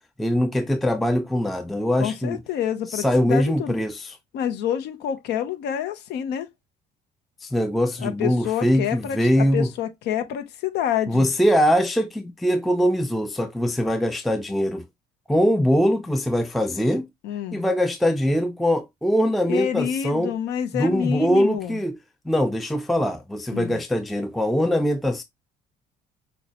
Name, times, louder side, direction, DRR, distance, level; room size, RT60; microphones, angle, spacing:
voice 1, 0.2-2.4 2.9-4.2 7.4-9.7 11.1-14.9 15.3-17.1 17.5-20.3 20.7-22.0 22.3-25.2, equal, ahead, 0.3 m, -22 dB
voice 2, 2.0-3.7 4.3-6.5 8.0-11.3 17.2-17.6 19.5-21.8 23.5-23.8, left 9 dB, 80° left, 0.7 m, -27 dB
6.4 x 2.2 x 2.9 m
cardioid pair, 110°, 17 cm